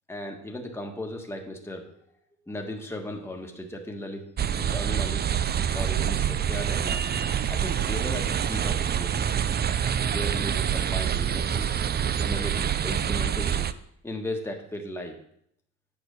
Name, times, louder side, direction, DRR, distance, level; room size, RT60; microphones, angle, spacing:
voice 1, 0.1-1.9 2.5-4.2 4.5-5.2 5.7-7.1 7.4-9.4 10.0-11.7 12.2-13.7 14.0-15.2, left 1 dB, 10° left, 2 dB, 1.4 m, -36 dB
sound 1, 4.4-13.7, right 9 dB, 35° right, 0.4 m, -26 dB
8.9 x 4.4 x 6.6 m, 0.70 s
cardioid pair, 90°, 30 cm